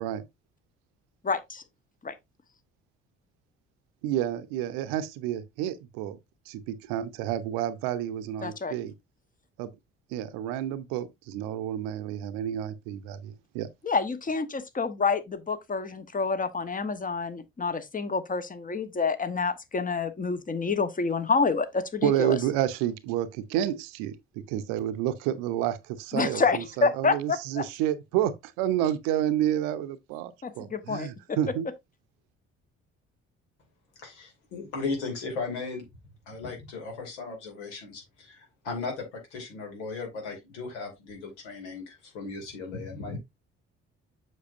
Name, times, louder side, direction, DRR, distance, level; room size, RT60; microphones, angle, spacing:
voice 1, 4.0-6.2 6.5-8.9 9.6-9.7 10.1-13.7 22.0-31.7, right 11 dB, 65° right, 0.8 m, -30 dB
voice 2, 8.4-8.7 13.8-22.4 26.1-27.6 30.4-31.4, left 4 dB, 25° left, 1.1 m, -28 dB
voice 3, 34.0-35.8 36.3-43.2, left 4 dB, 75° left, 2.6 m, -36 dB
7.4 x 6.1 x 2.6 m
figure-of-eight pair, 45°, 35 cm